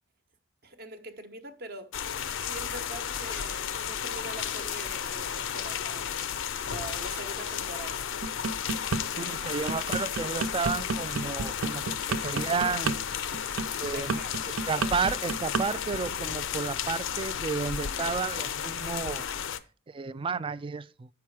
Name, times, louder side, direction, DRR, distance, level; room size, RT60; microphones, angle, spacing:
voice 1, 0.6-1.9 2.4-6.1 6.6-8.0 13.8-14.3, right 2 dB, 50° right, 1.1 m, -43 dB
sound 1, 1.9-19.6, left 8 dB, 65° left, 0.5 m, -33 dB
sound 2, 8.2-9.0 9.4-15.6 15.9-16.2, right 4 dB, 75° right, 0.7 m, -30 dB
voice 2, 9.2-13.0 13.8-14.2 14.6-19.3 19.9-21.1, right 5 dB, 25° right, 0.3 m, -32 dB
8.2 x 5.9 x 4.7 m
head